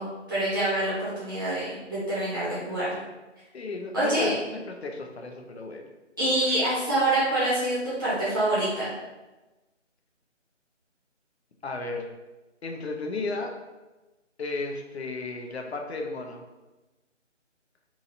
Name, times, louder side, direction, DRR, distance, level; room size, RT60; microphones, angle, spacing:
voice 1, 0.0-3.0 3.9-4.3 6.2-8.9, right 1 dB, 20° right, -11 dB, 0.8 m, -26 dB
voice 2, 3.5-5.8 11.6-12.1 12.6-13.5 14.4-16.4, left 3 dB, 60° left, 3 dB, 0.5 m, -34 dB
2.8 x 2.7 x 2.6 m, 1.1 s
figure-of-eight pair, 155°, 37 cm